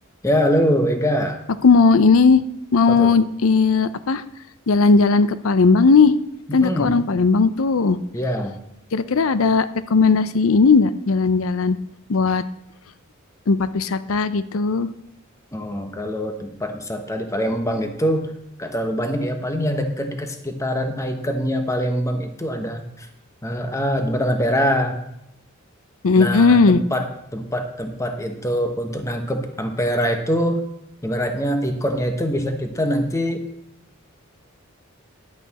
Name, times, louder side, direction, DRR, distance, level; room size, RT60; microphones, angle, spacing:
voice 1, 0.2-1.4 2.9-3.1 6.5-7.0 8.1-8.6 15.5-18.3 18.6-23.1 23.4-25.0 26.2-27.1 27.3-30.6 31.0-33.4, equal, 15° left, 5 dB, 1.1 m, -23 dB
voice 2, 1.6-2.4 2.7-4.2 4.7-6.1 6.5-8.0 8.9-11.8 12.1-12.4 13.5-14.9 26.0-26.8, left 4 dB, 70° left, 14 dB, 0.6 m, -17 dB
10.5 x 8.4 x 4.2 m, 0.80 s
head